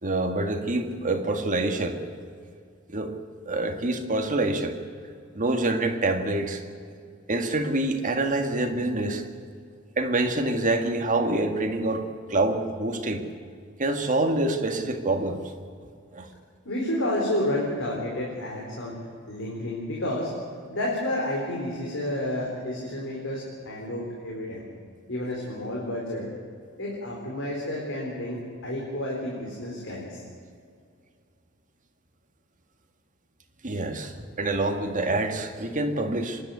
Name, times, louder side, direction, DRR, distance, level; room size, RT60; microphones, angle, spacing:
voice 1, 0.0-2.0 2.9-3.1 3.5-4.8 5.4-6.6 7.3-9.2 10.0-13.2 13.8-15.4 16.1-16.3 33.6-36.4, right 2 dB, 35° right, 5 dB, 1.9 m, -26 dB
voice 2, 16.6-18.9 19.3-20.3 20.7-24.6 25.1-26.3 26.8-30.2, left 1 dB, 60° left, -3 dB, 4.2 m, -30 dB
26.0 x 11.5 x 9.5 m, 2.2 s
head